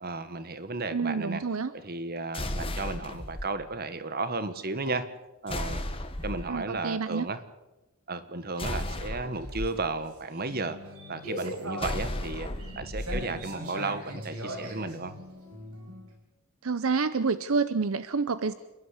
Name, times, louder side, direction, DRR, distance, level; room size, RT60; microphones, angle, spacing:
voice 1, 0.0-1.4 1.7-5.1 5.4-5.8 6.2-7.4 8.1-10.8 11.1-12.5 12.8-15.2, right 3 dB, 45° right, 12 dB, 1.3 m, -34 dB
voice 2, 0.9-1.7 6.4-7.3 16.6-18.5, right 4 dB, 75° right, 14 dB, 0.7 m, -28 dB
sound 1, 2.3-3.5 5.5-6.5 8.6-9.7 11.8-13.3, left 1 dB, 25° left, 1.6 m, -34 dB
sound 2, 9.3-16.1, equal, 90° right, 5.0 m, -40 dB
28.5 x 11.5 x 8.0 m, 1.0 s
head